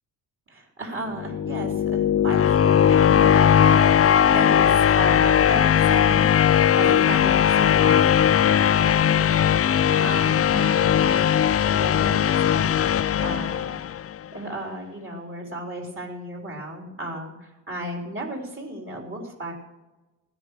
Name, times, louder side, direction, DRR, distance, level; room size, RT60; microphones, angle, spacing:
voice 1, 0.5-6.2 6.8-11.4 11.7-12.8 13.2-14.0 14.3-19.5, right 1 dB, 30° right, 1 dB, 3.8 m, -34 dB
sound 1, 1.1-14.2, left 9 dB, 35° left, 0.5 m, -19 dB
17.0 x 10.0 x 6.7 m, 1.1 s
cardioid pair, 95°, 40 cm